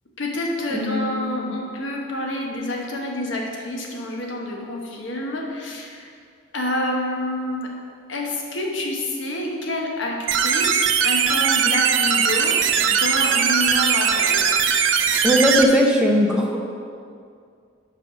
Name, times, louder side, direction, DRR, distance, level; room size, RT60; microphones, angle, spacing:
voice 1, 0.2-6.1 6.5-7.7 8.1-12.6 12.9-14.5, left 1 dB, 80° left, 0 dB, 1.1 m, -28 dB
voice 2, 0.7-1.5 15.2-16.6, equal, 5° right, -1 dB, 0.7 m, -19 dB
sound 1, 10.3-15.6, right 7 dB, 80° right, 0.5 m, -20 dB
5.8 x 4.8 x 6.0 m, 2.3 s
head